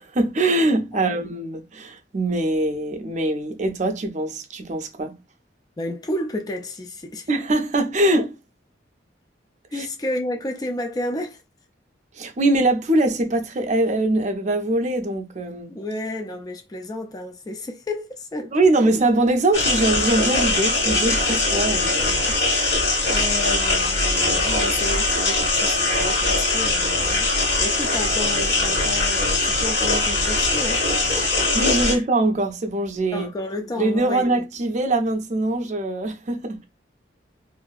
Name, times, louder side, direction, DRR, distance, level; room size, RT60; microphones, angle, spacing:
voice 1, 0.0-5.2 7.3-8.4 9.8-9.9 12.2-15.7 18.5-22.3 31.5-33.3 33.8-36.6, right 2 dB, 40° right, 0.5 m, -22 dB
voice 2, 5.8-7.3 9.7-11.4 15.7-18.5 18.8-18.9 21.3-21.7 21.9-22.8 23.1-27.3 27.6-31.5 31.8-32.0 33.1-34.5, left 1 dB, 20° left, 0.4 m, -32 dB
sound 1, 19.5-31.9, left 2 dB, 65° left, 1.1 m, -21 dB
2.6 x 2.5 x 2.3 m
head